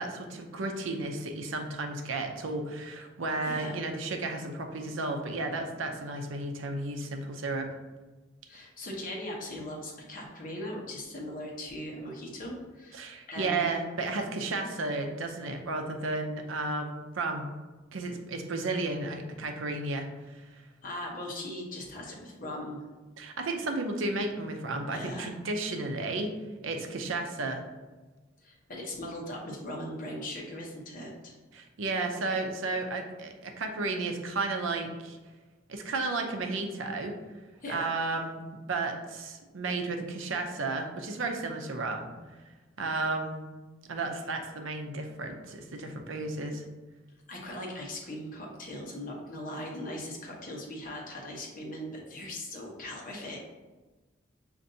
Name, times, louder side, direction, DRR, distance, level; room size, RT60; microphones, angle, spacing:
voice 1, 0.0-7.7 12.9-17.5 17.9-20.6 23.2-26.3 26.6-27.6 31.5-35.2 35.7-37.2 37.7-38.4 38.7-42.1 42.8-43.4 43.9-46.6, right 3 dB, 80° right, 4 dB, 0.6 m, -33 dB
voice 2, 3.4-3.8 8.5-13.7 20.8-22.9 24.9-25.3 28.4-31.4 37.6-37.9 47.3-53.4, left 1 dB, 45° left, -1 dB, 0.9 m, -39 dB
6.4 x 2.6 x 2.7 m, 1.2 s
head